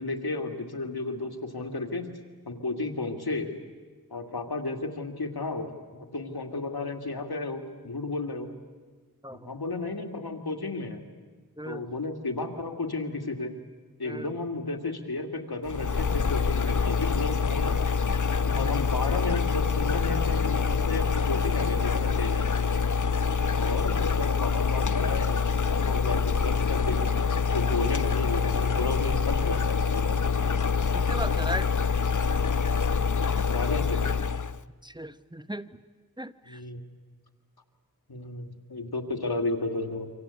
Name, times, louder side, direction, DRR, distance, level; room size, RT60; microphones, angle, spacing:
voice 1, 0.0-2.2 2.5-3.5 4.1-8.5 9.4-11.0 11.7-13.6 14.0-17.9 18.6-22.6 23.5-25.3 25.7-30.2 33.5-34.0 36.5-36.8 38.1-40.1, left 3 dB, 90° left, 5 dB, 2.4 m, -33 dB
voice 2, 9.2-9.6 11.6-11.9 14.0-14.4 18.5-18.7 30.9-31.7 34.8-35.8 36.2-36.6, equal, 10° right, 12 dB, 1.0 m, -37 dB
sound 1, 15.7-34.6, left 5 dB, 55° left, 0.8 m, -26 dB
28.0 x 25.0 x 8.4 m, 1.4 s
wide cardioid pair, 45°, 37 cm